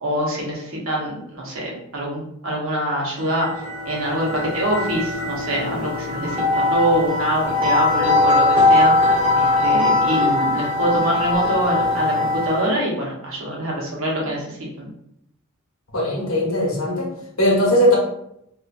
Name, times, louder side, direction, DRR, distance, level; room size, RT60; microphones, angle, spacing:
voice 1, 0.0-8.9 9.4-14.9, right 1 dB, 75° right, -3 dB, 0.8 m, -24 dB
sound 1, 3.3-12.8, left 2 dB, 10° right, 1.1 m, -20 dB
voice 2, 15.9-17.1 17.4-18.0, equal, 80° left, -2 dB, 0.8 m, -18 dB
2.8 x 2.2 x 2.4 m, 0.77 s
head